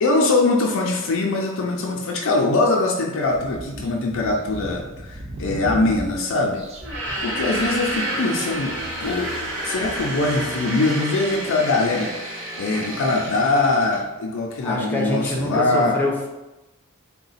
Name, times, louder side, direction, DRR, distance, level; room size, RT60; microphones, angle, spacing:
voice 1, 0.0-8.7 9.0-9.3 9.6-16.0, left 2 dB, 65° left, 0 dB, 0.5 m, -22 dB
sound 1, 3.2-10.1, right 1 dB, 30° right, 0.5 m, -38 dB
sound 2, 6.8-14.0, right 1 dB, 60° right, 1.0 m, -30 dB
voice 2, 14.6-16.3, left 1 dB, 10° left, -3 dB, 0.7 m, -25 dB
3.8 x 2.2 x 4.0 m, 1.0 s
head